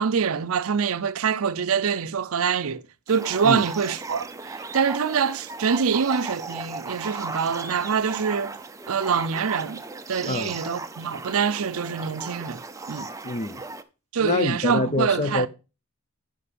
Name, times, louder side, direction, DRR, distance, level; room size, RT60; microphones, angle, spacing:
voice 1, 0.0-2.8 3.1-8.6 8.9-9.8 10.1-12.6 12.9-13.1 14.1-15.5, right 6 dB, 70° right, 0.6 m, -25 dB
sound 1, 3.1-13.8, right 3 dB, 15° right, 0.5 m, -37 dB
voice 2, 13.2-13.6 14.2-15.5, left 2 dB, 30° left, 0.6 m, -25 dB
9.8 x 5.3 x 5.1 m
head